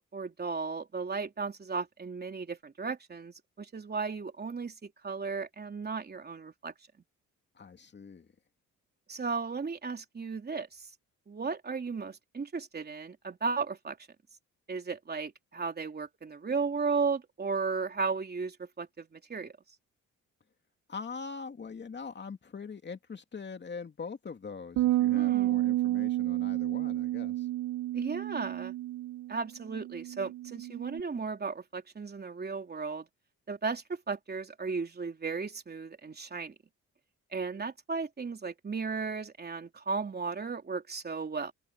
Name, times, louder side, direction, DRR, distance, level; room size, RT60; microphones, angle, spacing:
voice 1, 0.1-6.7 9.1-10.9 11.3-14.0 14.7-19.5 25.1-25.6 27.9-28.7 29.3-33.1 33.5-36.6 37.3-41.5, right 4 dB, 35° right, 3.4 m, -35 dB
voice 2, 7.5-8.3 20.9-27.5, left 5 dB, 35° left, 2.7 m, -42 dB
sound 1, 24.8-31.0, right 15 dB, 70° right, 0.4 m, -30 dB
open air
cardioid pair, 90°, 30 cm